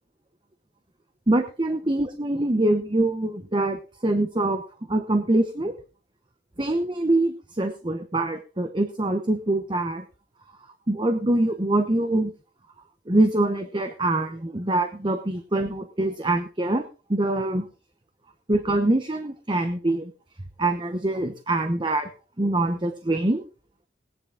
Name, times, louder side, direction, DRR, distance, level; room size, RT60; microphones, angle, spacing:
voice 1, 1.3-4.6 4.9-5.7 6.6-10.1 10.9-12.3 13.1-16.8 17.1-17.7 18.5-20.1 20.6-22.1 22.4-23.4, right 2 dB, 25° right, 7 dB, 0.9 m, -24 dB
18.0 x 10.5 x 3.7 m, 0.35 s
head